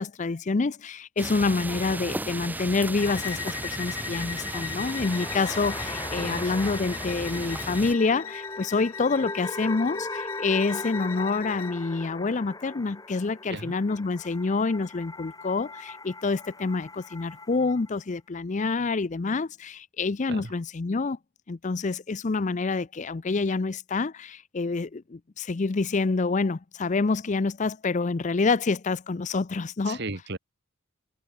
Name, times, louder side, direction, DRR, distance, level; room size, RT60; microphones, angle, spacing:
voice 1, 0.0-21.2 21.5-30.0, left 3 dB, 35° left, 0.5 m, -27 dB
sound 1, 1.2-7.9, right 1 dB, 10° right, 2.6 m, -35 dB
Bowed string instrument, 3.0-11.8, left 8 dB, 90° left, 7.5 m, -39 dB
sound 2, 4.6-17.9, left 2 dB, 20° left, 4.0 m, -39 dB
voice 2, 6.1-6.8 13.5-13.7 20.3-20.5 29.8-30.4, right 3 dB, 55° right, 1.8 m, -36 dB
head